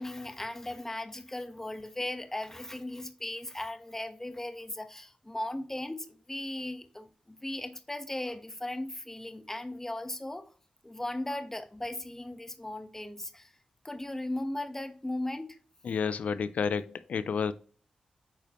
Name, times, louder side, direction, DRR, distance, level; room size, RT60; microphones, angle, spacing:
voice 1, 0.0-10.4 10.8-13.5 13.8-15.5, left 1 dB, 15° left, 1.2 m, -37 dB
voice 2, 15.8-17.5, left 6 dB, 80° left, 0.5 m, -30 dB
8.6 x 5.0 x 3.0 m
cardioid pair, 60°, 2 cm